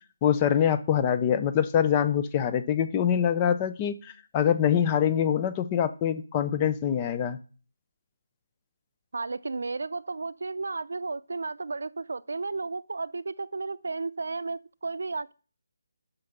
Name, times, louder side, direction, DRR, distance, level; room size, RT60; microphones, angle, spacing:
voice 1, 0.2-7.4, left 9 dB, 15° left, 0.4 m, -24 dB
voice 2, 9.1-15.3, right 3 dB, 70° right, 0.6 m, -33 dB
8.7 x 5.9 x 6.6 m
hypercardioid pair, 180°, 0 cm